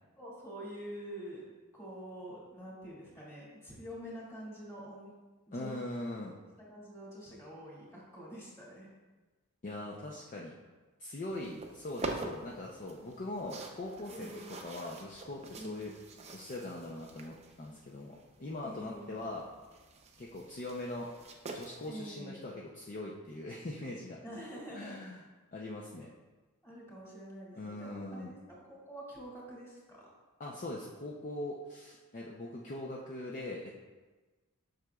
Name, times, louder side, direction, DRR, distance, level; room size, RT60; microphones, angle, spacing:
voice 1, 0.2-5.1 5.5-5.8 6.7-8.9 14.1-14.6 15.5-16.0 18.6-19.2 21.9-22.4 24.2-25.0 26.6-28.4 28.7-30.1, equal, 15° left, -7 dB, 2.1 m, -46 dB
voice 2, 5.5-6.4 9.6-10.5 11.0-15.9 16.3-19.5 20.2-21.1 21.5-24.2 24.7-25.2 25.5-26.1 27.5-28.3 30.4-33.7, left 1 dB, 35° left, -2 dB, 0.5 m, -41 dB
sound 1, 11.2-21.9, right 3 dB, 30° right, 0.6 m, -46 dB
7.6 x 6.2 x 2.3 m, 1.3 s
head